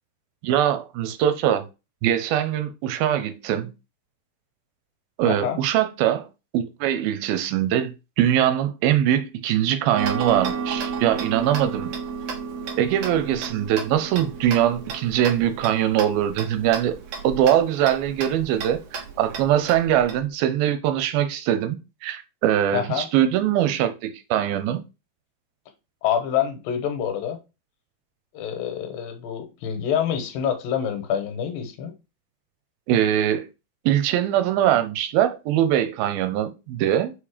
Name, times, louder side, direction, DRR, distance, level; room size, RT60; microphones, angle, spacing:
voice 1, 0.4-1.6 2.0-3.7 5.2-6.3 6.5-7.9 8.2-11.9 12.8-17.0 17.2-24.8 32.9-33.5 33.9-37.1, right 11 dB, 85° right, 2.7 m, -22 dB
voice 2, 5.3-5.6 22.7-23.1 26.0-27.4 28.3-31.9, left 9 dB, 75° left, 2.9 m, -26 dB
Tick-tock, 10.0-20.2, right 6 dB, 60° right, 1.8 m, -33 dB
5.3 x 5.2 x 5.0 m
omnidirectional pair, 4.2 m